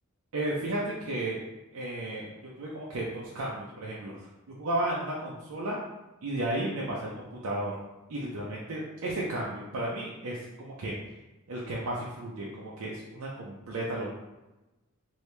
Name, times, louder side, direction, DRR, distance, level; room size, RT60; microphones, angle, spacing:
voice 1, 0.3-1.4 1.7-5.8 6.2-7.7 8.1-10.9 11.5-14.1, right 1 dB, 80° right, -4 dB, 0.5 m, -33 dB
3.0 x 2.7 x 3.2 m, 1.0 s
head